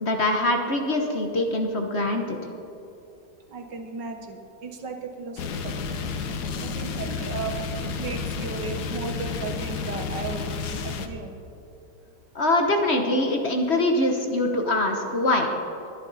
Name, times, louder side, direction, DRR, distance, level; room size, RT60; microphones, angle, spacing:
voice 1, 0.0-2.4 12.3-15.5, left 1 dB, 40° left, 3 dB, 1.2 m, -23 dB
voice 2, 3.5-5.8 6.6-10.5 10.8-11.3, right 4 dB, 80° right, 4 dB, 2.0 m, -35 dB
sound 1, 5.4-11.1, left 5 dB, 70° left, 1.5 m, -31 dB
21.5 x 10.5 x 4.1 m, 2.8 s
omnidirectional pair, 1.9 m